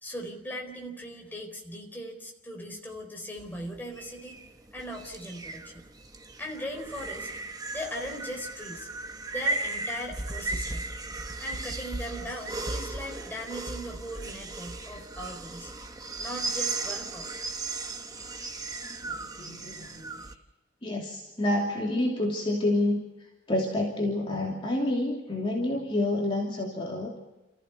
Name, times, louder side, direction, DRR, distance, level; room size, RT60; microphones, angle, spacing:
voice 1, 0.0-4.4 4.7-5.8 6.4-7.3 7.7-8.9 9.3-10.9 11.4-15.7 16.2-17.3, equal, 10° left, 1 dB, 4.4 m, -39 dB
sound 1, 3.4-20.3, right 3 dB, 20° right, 1.1 m, -36 dB
voice 2, 17.9-18.4 18.8-20.3 20.8-23.0 23.5-27.1, left 1 dB, 30° left, -2 dB, 3.0 m, -29 dB
30.0 x 15.0 x 6.9 m, 1.0 s
head